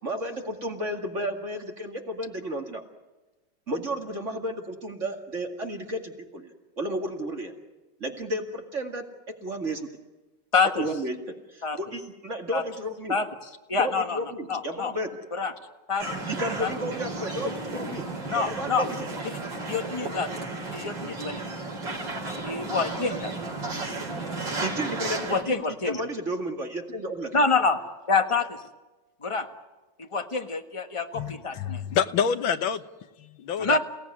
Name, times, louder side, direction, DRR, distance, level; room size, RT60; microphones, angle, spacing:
voice 1, 0.0-2.8 3.7-6.5 6.8-7.5 8.0-9.0 9.4-9.9 10.8-13.2 13.8-15.1 16.3-18.1 18.3-19.1 24.6-25.6 25.8-27.3, right 1 dB, 40° right, 3 dB, 2.5 m, -32 dB
voice 2, 10.5-10.9 11.6-11.8 12.5-12.6 13.1-13.3 13.7-14.2 14.5-14.9 15.3-15.5 15.9-16.2 16.6-16.7 17.4-17.6 18.3-18.9 19.7-20.3 20.7-21.4 22.4-23.3 25.3-26.0 27.3-27.8 28.1-28.6 29.2-29.5 30.0-31.8 33.6-33.8, left 4 dB, 15° left, 5 dB, 1.4 m, -26 dB
sound 1, 16.0-25.4, right 2 dB, 75° right, 4.8 m, -33 dB
voice 3, 31.1-32.8 33.2-33.8, left 8 dB, 85° left, 10 dB, 1.8 m, -27 dB
29.0 x 17.5 x 9.7 m, 1.1 s
omnidirectional pair, 2.1 m